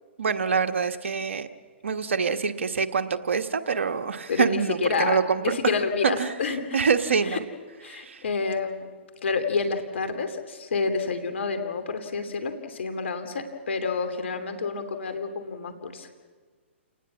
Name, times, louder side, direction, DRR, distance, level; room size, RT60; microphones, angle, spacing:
voice 1, 0.2-1.5 1.8-5.5 6.0-6.3 6.7-7.4 7.9-8.2, right 5 dB, 80° right, 7 dB, 1.4 m, -25 dB
voice 2, 4.3-6.6 7.3-7.4 7.8-8.9 9.2-16.1, left 4 dB, 70° left, 7 dB, 2.9 m, -28 dB
28.5 x 19.5 x 7.3 m, 1.5 s
hypercardioid pair, 130°, 7 cm